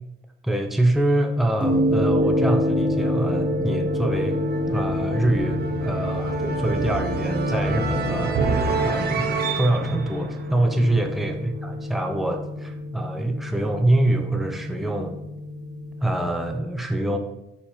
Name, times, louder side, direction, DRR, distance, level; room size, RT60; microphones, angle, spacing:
voice 1, 0.4-4.4 4.7-8.5 8.8-15.2 16.0-17.2, right 1 dB, ahead, 4 dB, 0.7 m, -25 dB
sound 1, 1.6-16.1, left 1 dB, 20° right, 1.3 m, -27 dB
sound 2, 2.2-11.2, right 4 dB, 50° right, 0.8 m, -29 dB
6.0 x 4.2 x 4.8 m, 0.90 s
cardioid pair, 90°, 20 cm